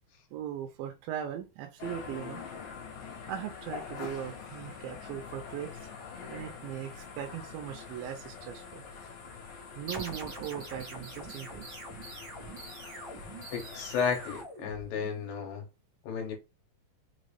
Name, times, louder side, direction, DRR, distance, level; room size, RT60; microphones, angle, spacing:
voice 1, 0.3-2.4 3.3-5.7 6.3-8.8 9.8-11.8, right 10 dB, 90° right, 2.4 m, -39 dB
sound 1, 1.8-14.4, left 5 dB, 65° left, 2.5 m, -45 dB
sound 2, 9.9-15.3, right 3 dB, 50° right, 1.3 m, -44 dB
voice 2, 13.5-15.6 16.0-16.3, left 6 dB, 80° left, 2.8 m, -33 dB
5.9 x 2.6 x 3.3 m
omnidirectional pair, 4.1 m